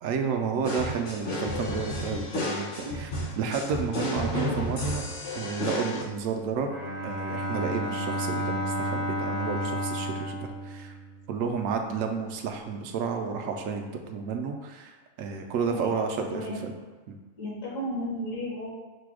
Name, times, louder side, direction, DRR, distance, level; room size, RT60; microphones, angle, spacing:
voice 1, 0.0-3.1 3.4-5.0 5.3-6.8 7.0-10.9 11.3-16.7 17.1-17.2, right 5 dB, 75° right, 4 dB, 1.0 m, -31 dB
sound 1, 0.6-6.0, left 1 dB, 45° left, 0.8 m, -32 dB
Bowed string instrument, 6.5-11.4, right 1 dB, 40° right, 0.7 m, -32 dB
voice 2, 16.3-16.6 17.4-18.7, equal, 70° left, -5 dB, 1.8 m, -33 dB
5.0 x 2.3 x 4.7 m, 1.4 s
omnidirectional pair, 1.4 m